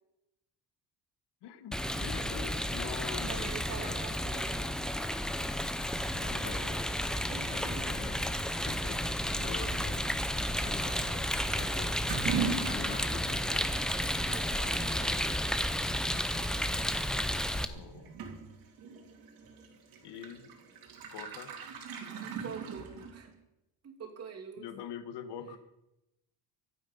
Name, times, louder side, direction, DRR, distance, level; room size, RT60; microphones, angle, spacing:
voice 1, 1.4-3.5 3.8-4.0 6.1-6.9 7.5-8.3 8.7-10.0 10.6-11.0 11.5-12.1 12.6-13.8 17.7-18.2 20.0-20.5 21.1-21.5 24.6-25.6, left 8 dB, 75° left, 10 dB, 1.5 m, -45 dB
Rain, 1.7-17.7, equal, ahead, 0.6 m, -32 dB
voice 2, 3.3-4.7 7.3-8.0 10.7-11.3 14.3-15.3 22.2-23.3 23.8-24.7, right 6 dB, 35° right, 2 dB, 2.9 m, -45 dB
Toilet flush / Liquid, 11.8-23.4, right 5 dB, 55° right, 2.8 m, -41 dB
24.0 x 8.9 x 5.5 m, 0.92 s
cardioid pair, 175°, 41 cm